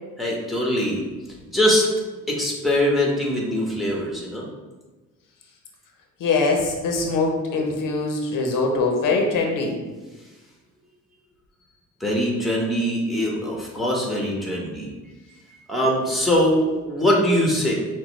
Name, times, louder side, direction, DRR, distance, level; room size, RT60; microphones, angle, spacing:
voice 1, 0.2-1.0 1.5-1.9 2.3-4.5 12.0-14.9 15.7-17.7, equal, ahead, -2 dB, 1.1 m, -22 dB
voice 2, 6.2-9.8, left 3 dB, 85° left, 2 dB, 0.7 m, -22 dB
6.0 x 2.2 x 3.1 m, 1.2 s
cardioid pair, 80°, 32 cm